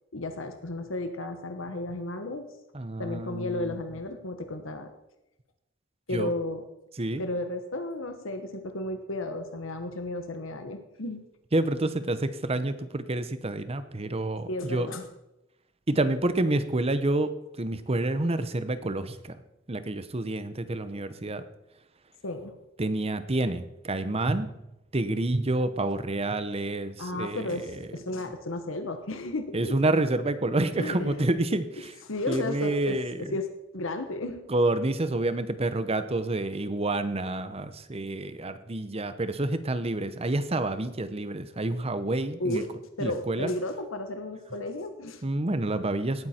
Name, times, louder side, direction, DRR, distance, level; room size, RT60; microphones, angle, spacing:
voice 1, 0.1-2.5 3.0-4.9 6.1-6.6 7.2-11.2 14.4-15.1 22.2-22.6 27.0-29.7 30.8-31.3 32.1-34.4 42.4-42.7 43.0-45.2, left 2 dB, 80° left, 7 dB, 1.2 m, -33 dB
voice 2, 2.7-3.8 6.1-6.3 7.0-7.2 11.5-14.9 15.9-17.3 17.6-19.4 19.7-21.4 22.8-24.5 24.9-27.8 29.5-31.9 32.2-33.4 34.5-42.6 43.0-43.5 45.2-46.3, right 2 dB, 30° right, 12 dB, 0.8 m, -28 dB
17.5 x 9.3 x 4.4 m, 0.91 s
head